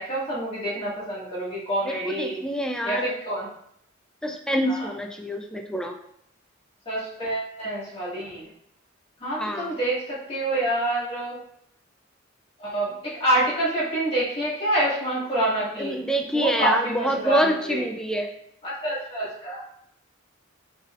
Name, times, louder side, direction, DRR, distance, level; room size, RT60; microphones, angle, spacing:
voice 1, 0.0-2.4 2.8-3.5 4.7-4.9 6.9-8.5 9.2-11.4 12.6-12.9 13.2-16.0 16.3-17.8 18.6-19.6, right 1 dB, 30° left, -8 dB, 1.8 m, -27 dB
voice 2, 1.8-3.1 4.2-5.9 9.4-9.7 15.8-18.3, equal, 5° left, 4 dB, 0.4 m, -26 dB
5.5 x 3.4 x 2.4 m, 0.70 s
head